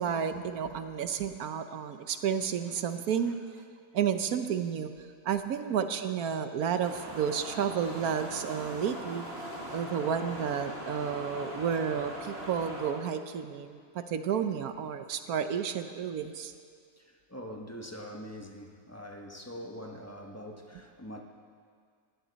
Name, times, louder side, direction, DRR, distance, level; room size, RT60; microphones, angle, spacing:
voice 1, 0.0-3.4 3.9-4.9 5.2-9.3 9.7-16.5, right 8 dB, 75° right, 9 dB, 1.2 m, -31 dB
sound 1, 6.8-12.9, equal, 40° right, 2.3 m, -40 dB
voice 2, 17.0-21.2, equal, 10° left, 1 dB, 1.1 m, -44 dB
20.0 x 16.0 x 4.1 m, 2.1 s
omnidirectional pair, 1.6 m